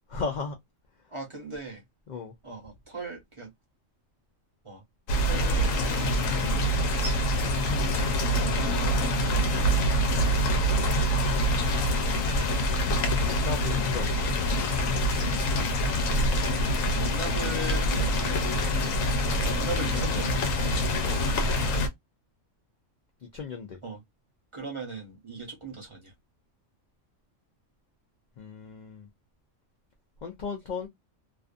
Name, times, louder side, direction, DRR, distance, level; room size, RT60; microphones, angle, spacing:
voice 1, 0.1-0.5 2.1-2.3 10.4-10.7 13.2-14.1 16.6-17.0 21.0-21.2 23.3-23.8 28.4-29.0 30.2-30.9, left 5 dB, 70° left, 0.4 m, -36 dB
voice 2, 1.1-1.8 2.4-3.5 4.6-4.8 5.3-7.2 8.4-9.1 17.0-18.8 19.5-20.6 23.8-24.0 24.5-26.1, right 2 dB, 30° right, 0.8 m, -38 dB
sound 1, 5.1-21.9, equal, 85° left, 1.0 m, -25 dB
2.5 x 2.4 x 2.4 m
omnidirectional pair, 1.3 m